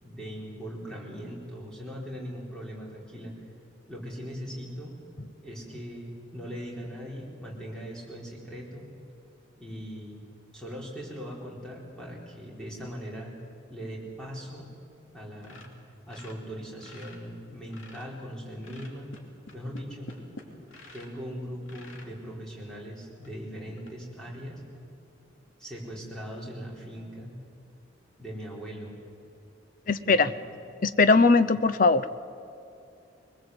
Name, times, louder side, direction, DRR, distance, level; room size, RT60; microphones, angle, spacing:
voice 1, 0.0-3.3 3.9-5.0 5.4-8.9 9.6-10.2 10.5-13.3 13.7-14.7 15.1-15.7 16.1-19.1 19.5-20.1 20.9-24.6 25.6-27.3 28.2-28.9 30.0-30.6, equal, 5° left, -4 dB, 4.4 m, -40 dB
sound 1, 15.4-17.2 17.5-18.2 18.6-21.2 21.7-22.1 22.7-22.8 23.2-23.3 23.8-23.9, left 2 dB, 90° left, 2.8 m, -48 dB
voice 2, 29.9-30.3 30.8-32.0, left 3 dB, 45° left, 13 dB, 0.7 m, -20 dB
22.0 x 20.5 x 8.0 m, 2.6 s
head